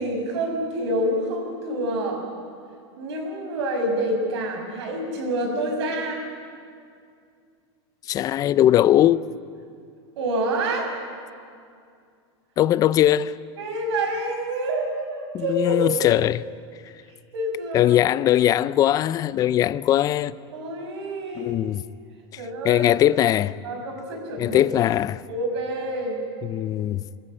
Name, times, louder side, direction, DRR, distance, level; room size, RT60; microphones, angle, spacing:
voice 1, 0.0-2.2 3.0-6.2 10.2-10.9 13.6-16.2 17.1-17.9 20.5-21.6 22.4-22.9 23.6-24.7 25.3-26.2, right 1 dB, 75° right, 5.9 m, -27 dB
voice 2, 8.1-9.2 12.6-13.4 15.3-16.4 17.7-20.3 21.4-21.8 22.3-23.6 24.4-25.2 26.4-27.0, left 12 dB, 25° left, 0.4 m, -20 dB
25.0 x 14.5 x 8.9 m
supercardioid pair, 145°, 14 cm